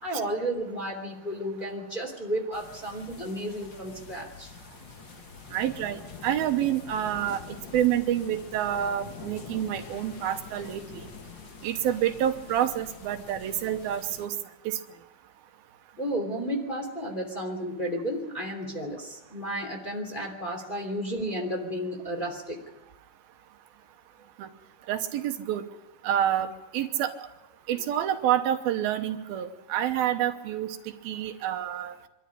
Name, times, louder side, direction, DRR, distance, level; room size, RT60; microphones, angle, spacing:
voice 1, 0.0-4.5 16.0-22.6, equal, 15° left, 0 dB, 2.8 m, -32 dB
sound 1, 2.5-14.3, left 6 dB, 65° left, 1.1 m, -45 dB
voice 2, 5.5-7.4 7.7-11.1 11.6-14.3 14.7-14.8 24.4-24.5 24.9-25.6 26.0-27.1 27.7-30.8 31.0-31.9, right 11 dB, 80° right, 7 dB, 2.8 m, -28 dB
25.0 x 12.5 x 10.0 m, 1.0 s
omnidirectional pair, 4.3 m